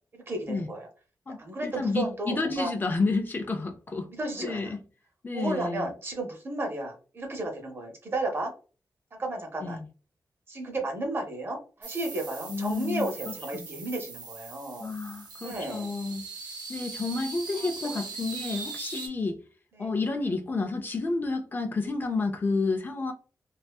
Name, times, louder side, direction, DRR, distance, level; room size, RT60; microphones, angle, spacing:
voice 1, 0.1-0.9 1.4-2.7 4.1-4.7 5.3-8.5 9.2-9.8 10.5-14.9 15.4-15.9 17.6-17.9 19.8-19.9, right 2 dB, 35° right, 0.7 m, -33 dB
voice 2, 1.3-4.1 4.4-4.8 5.2-5.9 9.6-9.9 12.5-13.1 13.5-13.7 14.8-16.2 16.7-19.4 19.8-23.1, left 3 dB, 30° left, 0.3 m, -30 dB
sound 1, 11.8-19.1, right 4 dB, 85° right, 0.6 m, -40 dB
2.6 x 2.3 x 2.2 m
wide cardioid pair, 160°, 7 cm